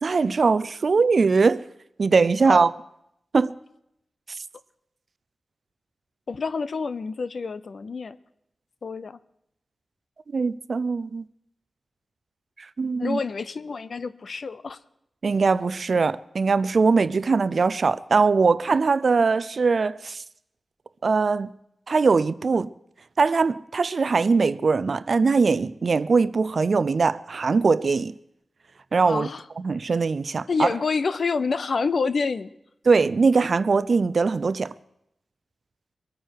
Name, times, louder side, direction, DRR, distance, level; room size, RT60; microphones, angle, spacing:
voice 1, 0.0-1.6 2.0-2.7 3.3-3.5 4.3-4.4 10.3-11.2 12.6-13.2 15.2-20.2 21.0-21.5 21.9-22.7 23.2-28.1 28.9-29.3 29.6-30.7 32.9-34.7, right 4 dB, 55° right, 0.5 m, -21 dB
voice 2, 6.3-8.2 8.8-9.2 13.0-14.8 29.1-29.4 30.5-32.5, left 4 dB, 65° left, 0.6 m, -27 dB
23.0 x 9.1 x 4.7 m
wide cardioid pair, 85°, 0 cm